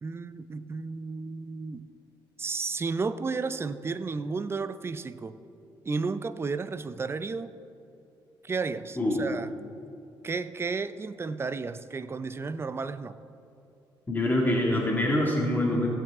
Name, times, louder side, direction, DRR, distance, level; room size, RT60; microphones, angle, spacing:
voice 1, 0.0-1.9 2.4-5.4 5.8-7.5 8.4-9.5 10.2-13.2, right 4 dB, 30° right, 13 dB, 0.5 m, -33 dB
voice 2, 14.1-15.9, left 1 dB, 20° left, -2 dB, 2.1 m, -25 dB
16.5 x 7.6 x 3.6 m, 2.8 s
cardioid pair, 85°, 9 cm